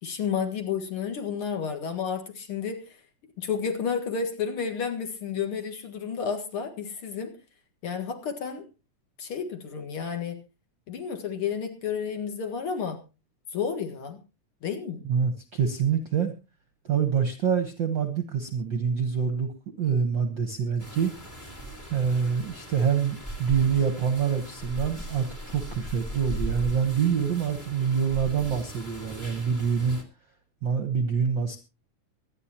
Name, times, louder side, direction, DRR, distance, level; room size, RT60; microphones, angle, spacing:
voice 1, 0.0-3.0 3.4-7.3 7.8-8.6 9.2-10.4 10.9-13.0 13.5-14.2 14.6-15.1, left 6 dB, 50° left, 5 dB, 2.3 m, -31 dB
voice 2, 15.0-16.3 16.8-19.5 19.8-21.1 21.9-30.0 30.6-31.6, right 7 dB, 55° right, 7 dB, 1.3 m, -26 dB
sound 1, 20.8-30.0, right 1 dB, 15° left, 2.1 m, -38 dB
24.0 x 10.0 x 2.9 m, 0.30 s
omnidirectional pair, 3.5 m